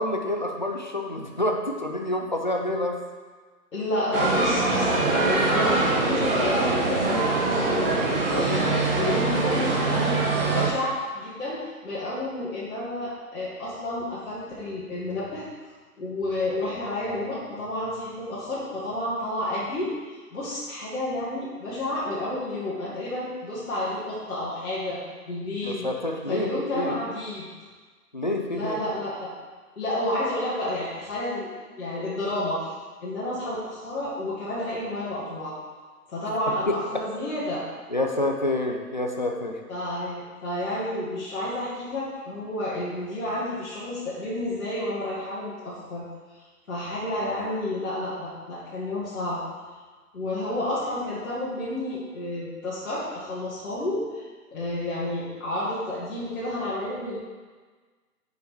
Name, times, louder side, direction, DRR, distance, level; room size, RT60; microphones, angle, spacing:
voice 1, 0.0-3.0 25.6-27.0 28.1-28.8 37.9-39.6, left 1 dB, 30° left, 2 dB, 0.5 m, -28 dB
voice 2, 3.7-15.5 16.0-25.0 25.3-25.9 26.3-27.5 28.5-29.3 29.8-31.5 31.8-32.7 33.0-35.5 36.1-37.6 39.7-46.0 46.3-49.4 50.1-57.2, left 1 dB, 60° left, -10 dB, 2.2 m, -30 dB
sound 1, 4.1-10.7, right 2 dB, 35° right, 1.4 m, -23 dB
6.6 x 5.3 x 4.6 m, 1.4 s
figure-of-eight pair, 150°, 47 cm